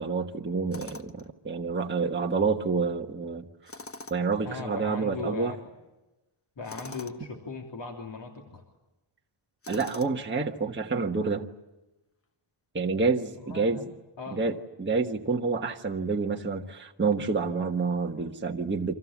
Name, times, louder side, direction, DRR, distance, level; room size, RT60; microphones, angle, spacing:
voice 1, 0.0-3.4 4.1-5.5 9.7-11.5 12.7-13.8 14.3-18.9, right 4 dB, 20° right, 1 dB, 1.3 m, -28 dB
Tools, 0.7-1.3 3.6-4.4 6.6-7.2 9.6-10.3, left 3 dB, 25° left, 1.2 m, -43 dB
voice 2, 4.4-5.7 6.6-8.6 13.3-13.9 14.2-14.4, left 4 dB, 60° left, 1 dB, 3.3 m, -38 dB
28.5 x 26.0 x 7.3 m, 1.0 s
wide cardioid pair, 170°, 49 cm